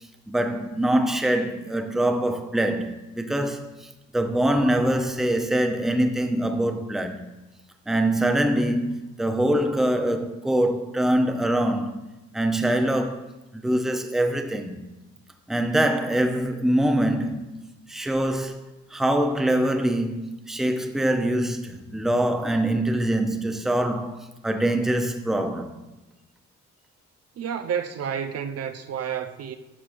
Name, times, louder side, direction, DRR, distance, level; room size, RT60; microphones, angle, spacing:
voice 1, 0.3-7.2 7.9-12.0 12.3-13.3 13.5-14.8 15.5-17.6 17.9-18.6 18.9-25.8, right 1 dB, ahead, 0.6 m, -24 dB
voice 2, 27.4-29.6, right 8 dB, 55° right, 0.6 m, -30 dB
9.9 x 5.9 x 2.6 m
cardioid pair, 90°, 30 cm